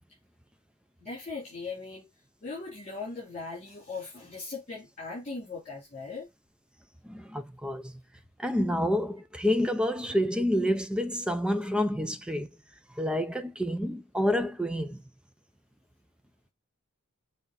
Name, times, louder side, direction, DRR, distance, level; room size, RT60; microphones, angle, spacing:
voice 1, 1.0-2.1 2.4-6.3, left 4 dB, 30° left, 3.3 m, -39 dB
voice 2, 7.0-7.9 8.4-12.5 13.0-15.0, equal, 5° right, 0.5 m, -28 dB
7.1 x 3.3 x 4.0 m
head